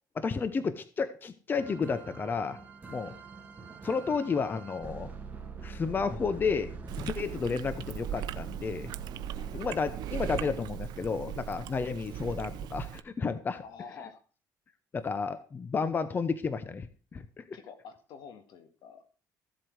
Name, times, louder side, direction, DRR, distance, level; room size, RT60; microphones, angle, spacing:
voice 1, 0.1-2.6 2.9-3.1 3.8-5.1 5.6-6.7 7.0-8.9 9.5-13.6 14.9-16.9 17.1-17.6, left 5 dB, 25° left, 12 dB, 0.8 m, -32 dB
sound 1, 1.6-11.4 12.9-13.1 13.6-13.7, right 4 dB, 20° right, 1.8 m, -45 dB
Chewing mastication, 6.9-13.0, right 11 dB, 65° right, 0.8 m, -39 dB
voice 2, 13.6-14.2 17.5-19.1, left 6 dB, 70° left, 10 dB, 1.8 m, -48 dB
14.5 x 7.9 x 4.7 m, 0.39 s
cardioid pair, 125°, 7 cm